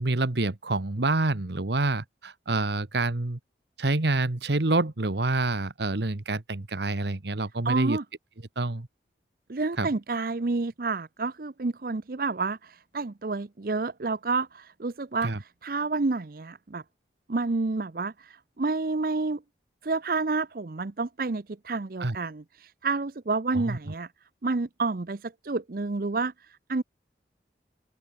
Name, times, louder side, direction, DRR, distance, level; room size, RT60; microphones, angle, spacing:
voice 1, 0.0-3.4 3.8-8.0 8.6-8.9 9.8-9.9 15.2-15.4 22.0-22.2 23.5-23.9, right 2 dB, 65° right, 1.3 m, -27 dB
voice 2, 7.6-8.0 9.5-16.8 17.3-19.4 19.8-24.1 24.4-26.8, right 3 dB, 50° right, 0.6 m, -29 dB
open air
head